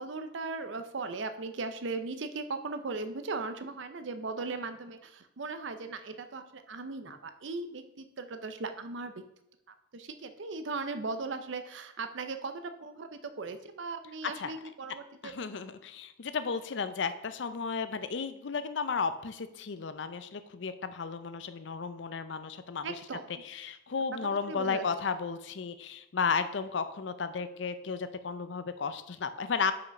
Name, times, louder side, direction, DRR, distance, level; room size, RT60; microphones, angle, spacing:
voice 1, 0.0-9.1 9.9-15.3 22.8-23.3 24.5-24.8, right 3 dB, 75° right, 9 dB, 0.6 m, -38 dB
voice 2, 15.2-23.0 23.4-29.7, left 5 dB, 65° left, 12 dB, 0.5 m, -34 dB
5.6 x 5.1 x 5.2 m, 0.84 s
head